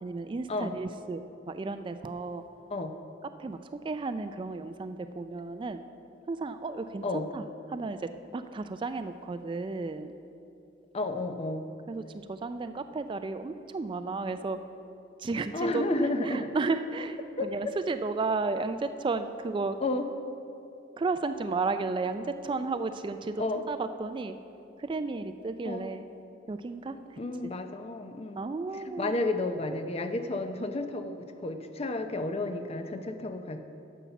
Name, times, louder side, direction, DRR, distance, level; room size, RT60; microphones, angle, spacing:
voice 1, 0.0-1.2 1.5-2.4 3.4-3.6 3.8-5.8 6.3-7.4 7.7-10.1 11.9-12.0 12.3-14.6 15.2-15.8 16.2-19.8 21.0-24.4 24.8-26.0 26.5-27.0 28.4-29.3, right 3 dB, 25° right, 10 dB, 0.3 m, -33 dB
voice 2, 10.9-11.6 15.5-16.5 17.4-17.5 19.8-20.1 23.4-23.6 25.6-26.0 27.2-28.4 28.7-33.6, left 2 dB, 35° left, 7 dB, 0.6 m, -31 dB
11.0 x 7.2 x 5.8 m, 2.8 s
head